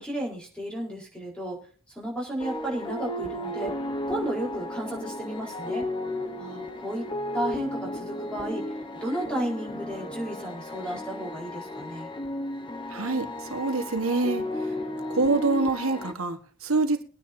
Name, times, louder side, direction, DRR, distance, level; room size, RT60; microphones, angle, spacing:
voice 1, 0.0-3.7 4.1-5.9 6.4-7.1 7.3-8.7 9.0-12.1, right 1 dB, 5° left, -2 dB, 4.2 m, -33 dB
sound 1, 2.4-16.1, left 1 dB, 25° left, 0.9 m, -34 dB
voice 2, 12.9-14.5 15.1-17.0, right 3 dB, 85° right, 7 dB, 1.3 m, -26 dB
22.5 x 9.6 x 2.7 m, 0.42 s
head